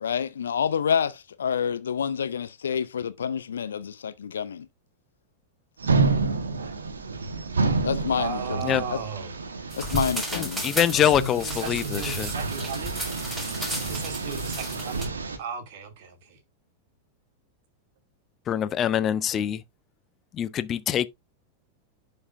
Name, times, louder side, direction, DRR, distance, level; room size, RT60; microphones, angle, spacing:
voice 1, 0.0-4.7 7.8-8.4 8.9-9.0 9.8-10.6, left 7 dB, 65° left, 0.5 m, -28 dB
sound 1, 5.8-15.4, right 3 dB, 70° right, 1.4 m, -29 dB
voice 2, 8.1-9.3 10.9-13.0 13.9-16.4, right 5 dB, 50° right, 2.6 m, -35 dB
sound 2, 9.7-15.1, right 1 dB, 10° right, 5.4 m, -34 dB
voice 3, 10.3-12.3 18.5-19.6 20.3-21.1, left 10 dB, 30° left, 0.7 m, -24 dB
11.0 x 5.4 x 2.6 m
figure-of-eight pair, 90°, 0 cm